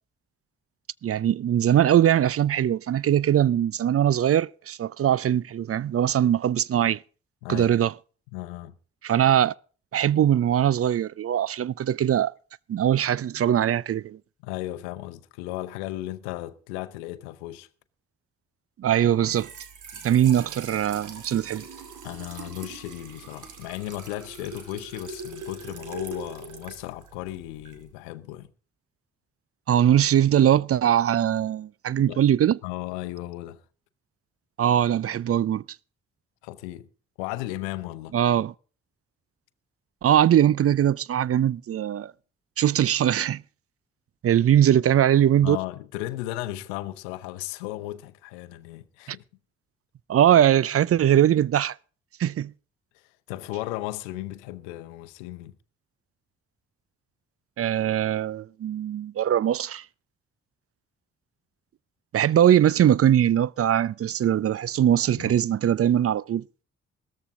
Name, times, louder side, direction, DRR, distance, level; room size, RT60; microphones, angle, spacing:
voice 1, 1.0-7.0 7.5-7.9 9.0-9.5 9.9-12.3 12.7-14.2 18.8-19.5 20.0-21.6 29.7-32.6 34.6-35.6 38.1-38.5 40.0-42.1 42.6-43.4 44.2-45.6 50.1-51.8 52.2-52.5 57.6-59.8 62.1-66.4, right 10 dB, 45° right, 0.6 m, -21 dB
voice 2, 7.4-7.8 8.3-8.7 14.4-17.7 22.0-28.5 32.1-32.2 32.6-33.6 36.4-36.9 37.2-38.1 45.4-49.2 53.3-55.6 65.2-65.4, left 16 dB, 90° left, 0.8 m, -35 dB
Trickle dribble / Fill (with liquid), 19.1-27.9, right 4 dB, 65° right, 2.9 m, -42 dB
17.0 x 14.0 x 3.7 m
hypercardioid pair, 45°, 32 cm